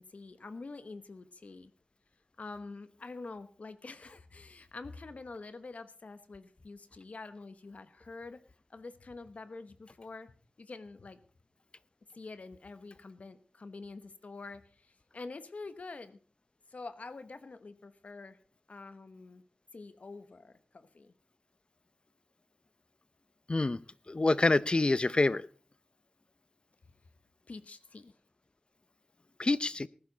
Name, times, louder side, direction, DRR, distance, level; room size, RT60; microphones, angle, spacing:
voice 1, 0.0-1.7 2.4-8.4 8.7-10.3 10.6-11.2 12.1-14.9 15.1-16.2 16.7-18.4 18.7-19.4 19.7-21.1 27.5-28.2, left 3 dB, 70° left, 12 dB, 1.1 m, -46 dB
voice 2, 23.5-23.8 24.1-25.5 29.4-29.9, left 2 dB, 45° left, 18 dB, 0.6 m, -26 dB
18.5 x 11.0 x 4.0 m, 0.40 s
cardioid pair, 45°, 2 cm